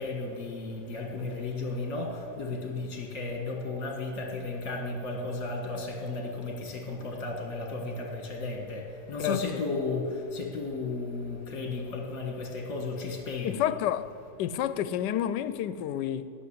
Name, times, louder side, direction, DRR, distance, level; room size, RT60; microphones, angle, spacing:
voice 1, 0.0-13.6, left 3 dB, 55° left, 2.0 m, -34 dB
voice 2, 9.2-9.6 13.4-14.1 14.4-16.3, left 10 dB, 85° left, 1.2 m, -30 dB
16.0 x 6.5 x 9.9 m
omnidirectional pair, 1.8 m